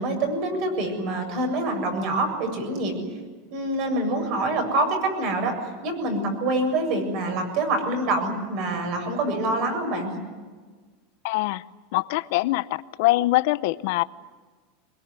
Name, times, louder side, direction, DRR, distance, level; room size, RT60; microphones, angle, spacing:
voice 1, 0.0-2.9 3.5-5.5 5.8-10.1, right 2 dB, 45° right, 4 dB, 7.4 m, -26 dB
voice 2, 11.2-11.6 11.9-12.7 13.0-14.0, left 18 dB, 60° left, 16 dB, 0.8 m, -23 dB
24.0 x 22.0 x 9.7 m, 1.4 s
supercardioid pair, 160°, 0 cm